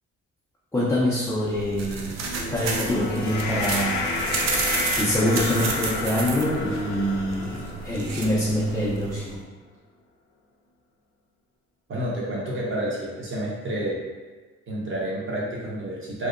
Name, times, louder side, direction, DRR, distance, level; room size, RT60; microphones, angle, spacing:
voice 1, 0.7-2.1 2.5-4.1 4.5-9.4, equal, 10° left, -7 dB, 0.4 m, -25 dB
sound 1, 1.4-9.3, right 4 dB, 60° right, 0.5 m, -31 dB
sound 2, 2.0-8.5, left 3 dB, 75° left, 0.5 m, -31 dB
voice 2, 11.9-14.0 14.7-16.3, right 1 dB, 40° right, -5 dB, 0.9 m, -29 dB
2.7 x 2.0 x 2.4 m, 1.3 s
cardioid pair, 90°, 30 cm